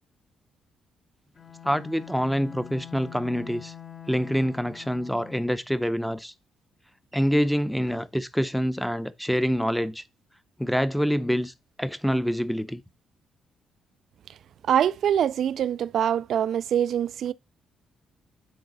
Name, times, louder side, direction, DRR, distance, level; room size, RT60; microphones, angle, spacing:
Bowed string instrument, 1.3-5.7, left 10 dB, 40° left, 1.0 m, -45 dB
voice 1, 1.6-3.7 4.1-6.3 7.1-10.0 10.6-11.5 11.8-12.8, equal, ahead, 0.6 m, -26 dB
voice 2, 14.7-17.3, right 9 dB, 65° right, 0.3 m, -24 dB
9.4 x 3.9 x 4.0 m
cardioid pair, 90°, 0 cm